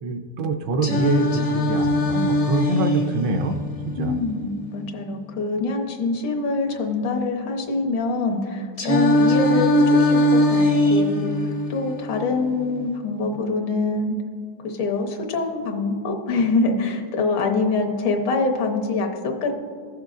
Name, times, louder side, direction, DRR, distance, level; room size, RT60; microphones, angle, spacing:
voice 1, 0.0-3.6 3.8-4.2, right 3 dB, 75° right, 4 dB, 1.2 m, -25 dB
Singing, 0.8-4.8 8.8-12.8, left 1 dB, 65° left, 0.3 m, -21 dB
voice 2, 4.0-10.6 10.9-14.2 14.6-19.6, left 3 dB, 85° left, 3 dB, 1.7 m, -25 dB
16.0 x 6.5 x 2.4 m, 2.1 s
omnidirectional pair, 2.1 m